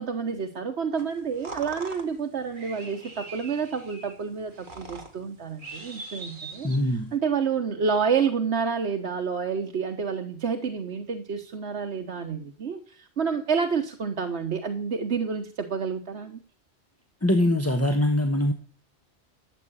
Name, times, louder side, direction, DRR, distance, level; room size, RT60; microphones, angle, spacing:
voice 1, 0.0-6.7 7.1-16.4, right 6 dB, 70° right, 4 dB, 1.4 m, -29 dB
sound 1, 1.0-7.2, right 3 dB, 45° right, 2.0 m, -43 dB
voice 2, 6.6-7.1 17.2-18.5, left 1 dB, 15° left, 7 dB, 1.0 m, -23 dB
12.5 x 7.8 x 8.9 m, 0.43 s
omnidirectional pair, 1.2 m